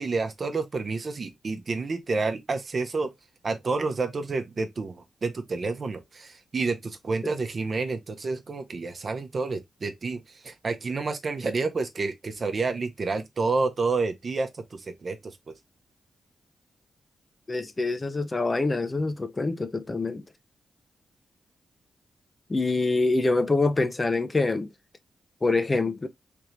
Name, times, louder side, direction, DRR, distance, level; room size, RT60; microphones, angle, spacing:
voice 1, 0.0-3.1 3.4-15.5, right 3 dB, 50° right, 0.8 m, -29 dB
voice 2, 17.5-20.2 22.5-24.7 25.4-26.1, left 3 dB, 30° left, 0.6 m, -25 dB
3.4 x 2.8 x 3.1 m
cardioid pair, 60°, 0 cm